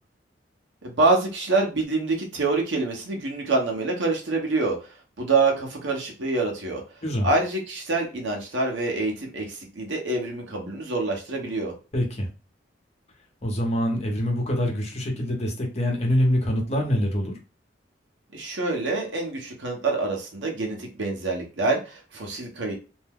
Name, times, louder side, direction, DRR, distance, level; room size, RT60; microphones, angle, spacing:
voice 1, 0.8-4.8 5.2-6.8 7.2-11.7 18.3-22.7, right 3 dB, 75° right, 0 dB, 1.0 m, -26 dB
voice 2, 11.9-12.3 13.4-17.3, equal, 35° left, 1 dB, 0.9 m, -25 dB
2.6 x 2.2 x 3.5 m, 0.33 s
head